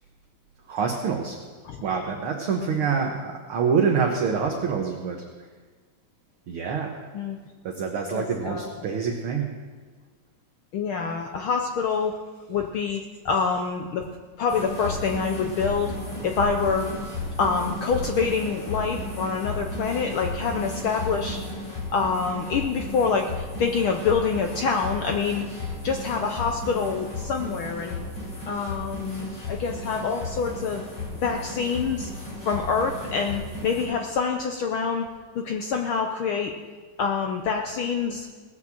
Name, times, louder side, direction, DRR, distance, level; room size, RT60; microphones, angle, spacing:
voice 1, 0.7-1.4 1.8-5.2 6.5-6.9 7.6-9.5, right 6 dB, 60° right, 1 dB, 1.8 m, -26 dB
voice 2, 8.1-8.8 10.7-12.2 12.5-14.1 14.4-15.9 16.2-16.9 17.4-21.4 21.9-28.0 28.5-30.8 31.2-32.1 32.5-35.1 35.3-36.5 37.0-38.3, left 5 dB, 75° left, 3 dB, 1.2 m, -26 dB
sound 1, 14.5-33.9, left 2 dB, 55° left, 5.9 m, -34 dB
19.0 x 6.5 x 7.3 m, 1.4 s
omnidirectional pair, 3.3 m